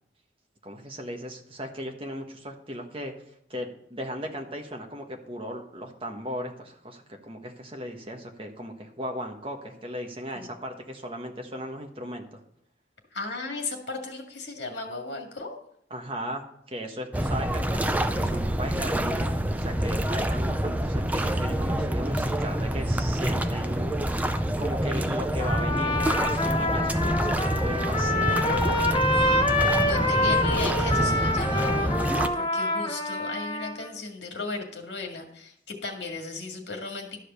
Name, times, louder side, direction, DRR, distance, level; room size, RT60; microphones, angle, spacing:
voice 1, 0.6-3.1 3.5-12.4 15.9-24.2 24.6-28.4, equal, 30° right, 3 dB, 1.4 m, -37 dB
voice 2, 13.1-15.6 29.8-37.2, left 3 dB, 70° left, 3 dB, 2.0 m, -36 dB
sound 1, 17.1-32.3, right 1 dB, 10° right, 0.5 m, -27 dB
Trumpet, 25.4-33.9, left 1 dB, 25° left, 1.1 m, -26 dB
12.5 x 5.0 x 6.9 m, 0.70 s
head